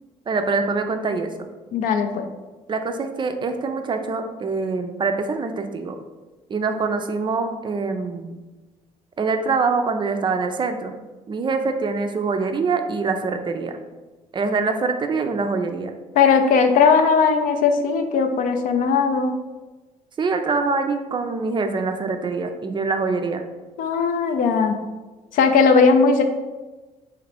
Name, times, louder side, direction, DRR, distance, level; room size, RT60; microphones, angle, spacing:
voice 1, 0.3-1.5 2.7-6.0 6.5-8.4 9.2-10.9 11.3-13.8 14.3-15.9 20.2-23.4, right 4 dB, 30° right, 6 dB, 0.3 m, -24 dB
voice 2, 1.7-2.3 16.2-19.4 23.8-24.8 25.3-26.2, left 5 dB, 65° left, 6 dB, 0.4 m, -18 dB
2.9 x 2.4 x 3.3 m, 1.2 s
supercardioid pair, 70°, 15 cm